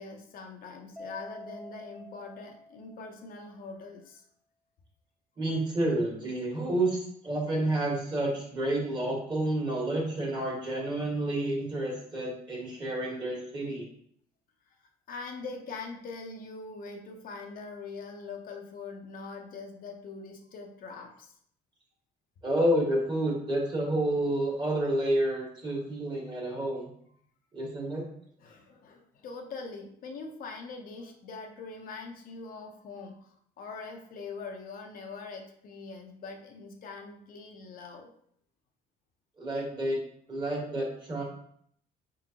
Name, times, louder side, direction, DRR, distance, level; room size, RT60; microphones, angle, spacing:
voice 1, 0.0-4.2 15.1-21.3 28.4-33.3 33.6-38.1, left 4 dB, 60° left, 2 dB, 0.8 m, -43 dB
Mallet percussion, 1.0-3.4, left 1 dB, 5° left, 0.4 m, -47 dB
voice 2, 5.4-7.0 7.2-13.9 22.4-26.9 27.5-28.1 39.4-40.0 40.3-41.2, right 1 dB, 25° right, -3 dB, 1.8 m, -29 dB
4.7 x 3.7 x 2.9 m, 0.66 s
cardioid pair, 110°, 17 cm